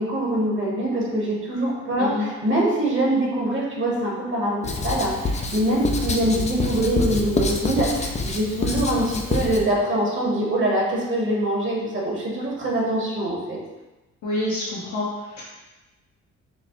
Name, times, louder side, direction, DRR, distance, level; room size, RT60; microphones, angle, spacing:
voice 1, 0.0-13.6, right 1 dB, 40° right, -3 dB, 1.2 m, -24 dB
Writing, 4.6-9.6, left 3 dB, 25° left, 0.4 m, -26 dB
voice 2, 14.2-15.4, left 2 dB, 70° left, -7 dB, 1.0 m, -27 dB
6.0 x 2.0 x 3.0 m, 1.1 s
cardioid pair, 90°, 30 cm